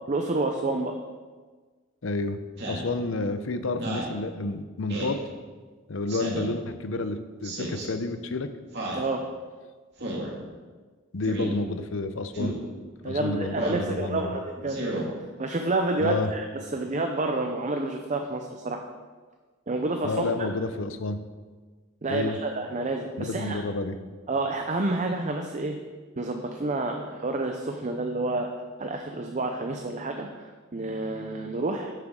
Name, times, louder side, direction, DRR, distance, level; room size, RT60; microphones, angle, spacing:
voice 1, 0.1-1.0 8.9-9.2 13.0-14.8 15.4-18.8 19.7-20.5 22.0-23.6 24.3-25.8 26.2-28.5 28.8-31.9, right 2 dB, 35° right, 4 dB, 0.6 m, -29 dB
voice 2, 2.0-2.4 2.7-5.2 5.9-8.5 11.1-12.5 13.0-14.3 16.0-16.3 20.0-21.2 22.1-22.4 23.2-24.0, left 2 dB, 70° left, 10 dB, 0.7 m, -30 dB
Speech synthesizer, 2.6-2.9 3.7-4.1 4.9-5.2 6.1-6.5 7.4-7.9 8.7-9.1 10.0-10.3 11.2-11.5 12.3-12.6 13.5-13.8 14.7-15.1, right 1 dB, 55° right, 2.2 m, -32 dB
10.5 x 7.8 x 3.8 m, 1.4 s
head